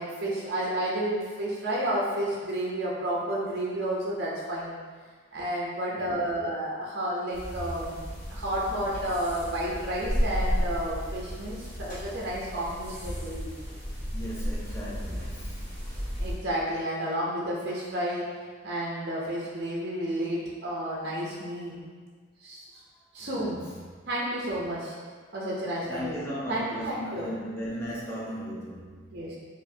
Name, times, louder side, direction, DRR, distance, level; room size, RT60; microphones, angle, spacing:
voice 1, 0.0-4.8 5.3-13.5 16.1-18.3 18.6-21.9 22.4-22.6 23.1-23.6 24.1-25.0 25.3-26.1 26.5-27.3 29.1-29.4, right 1 dB, 50° right, -5 dB, 0.6 m, -31 dB
voice 2, 5.9-6.3 14.1-15.7 23.2-23.9 25.8-29.2, equal, 10° left, -7 dB, 0.7 m, -37 dB
sound 1, 7.3-16.3, equal, 40° left, 1.2 m, -33 dB
5.0 x 2.5 x 2.7 m, 1.5 s
head